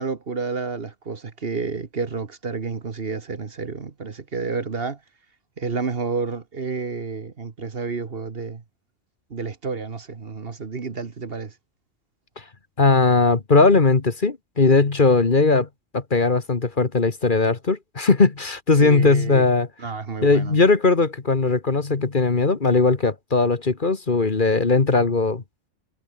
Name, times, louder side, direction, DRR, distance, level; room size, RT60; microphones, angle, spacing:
voice 1, 0.0-5.0 5.6-8.6 9.3-11.5 18.8-19.4 19.8-20.6, right 4 dB, 50° right, 1.6 m, -30 dB
voice 2, 12.8-15.7 15.9-19.7 20.2-25.4, left 3 dB, 40° left, 1.7 m, -19 dB
omnidirectional pair, 1.3 m